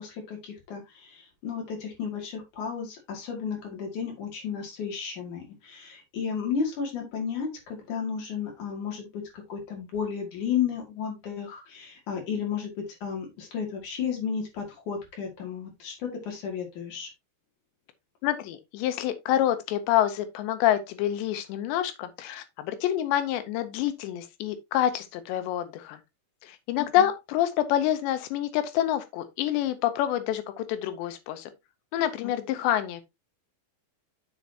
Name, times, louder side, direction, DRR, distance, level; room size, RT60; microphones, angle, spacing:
voice 1, 0.0-9.2 9.5-12.7 13.0-17.1 27.0-27.1 32.2-32.3, left 7 dB, 50° left, 3.6 m, -33 dB
voice 2, 18.2-26.0 26.4-31.5 31.9-33.0, left 12 dB, 90° left, 3.1 m, -27 dB
7.6 x 7.2 x 2.9 m
omnidirectional pair, 5.0 m